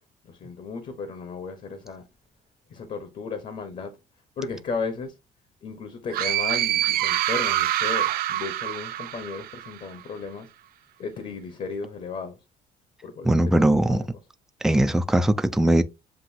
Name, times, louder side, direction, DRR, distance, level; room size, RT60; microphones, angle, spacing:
voice 1, 0.2-2.0 2.7-3.9 4.4-5.1 5.6-10.5 11.0-12.4 13.0-14.0, left 4 dB, 45° left, 1.0 m, -35 dB
sound 1, 6.1-9.8, right 13 dB, 60° right, 0.4 m, -25 dB
voice 2, 13.3-14.0 14.6-15.8, right 1 dB, 5° right, 0.4 m, -20 dB
7.6 x 2.5 x 2.7 m
cardioid pair, 110°, 17 cm